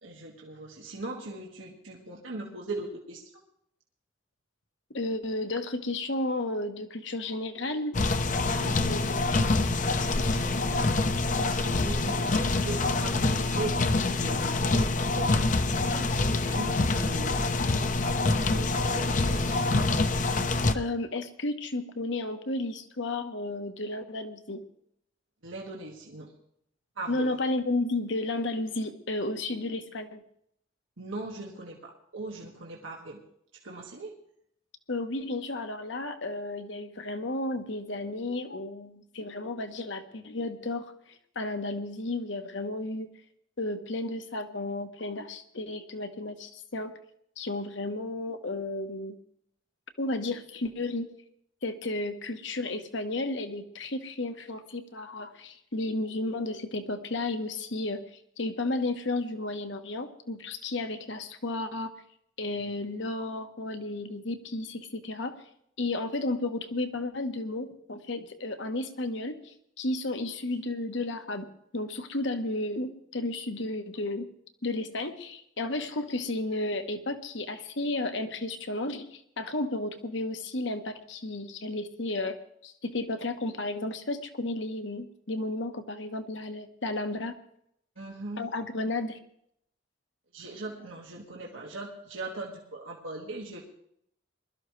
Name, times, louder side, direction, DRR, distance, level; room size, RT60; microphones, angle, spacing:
voice 1, 0.0-3.2 8.6-9.1 10.0-10.9 11.4-15.4 15.9-19.9 25.4-26.3 27.0-27.4 31.0-33.2 33.6-34.1 88.0-88.4 90.3-93.6, right 2 dB, 85° right, -1 dB, 1.8 m, -40 dB
voice 2, 4.9-8.0 8.8-9.2 20.7-24.6 27.1-30.2 34.9-43.1 43.6-46.9 47.4-49.2 50.0-51.1 51.6-58.0 58.4-61.9 62.4-65.4 65.8-71.5 71.7-74.3 74.6-82.4 82.6-87.4 88.4-89.2, left 2 dB, 70° left, 8 dB, 1.2 m, -33 dB
sound 1, 7.9-20.8, left 2 dB, 40° left, 0.7 m, -26 dB
21.5 x 13.0 x 3.2 m, 0.73 s
head